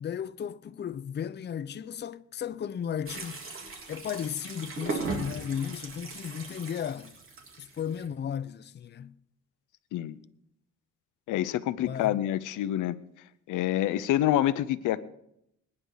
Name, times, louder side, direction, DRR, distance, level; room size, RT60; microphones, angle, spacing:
voice 1, 0.0-3.4 3.9-7.1 7.6-9.1 11.8-12.2, left 8 dB, 35° left, 0.6 m, -35 dB
sound 1, 3.1-8.1, right 3 dB, 45° right, 3.3 m, -38 dB
voice 2, 11.3-13.0 13.5-15.0, left 13 dB, 85° left, 0.8 m, -27 dB
25.0 x 9.9 x 4.0 m
cardioid pair, 90°, 30 cm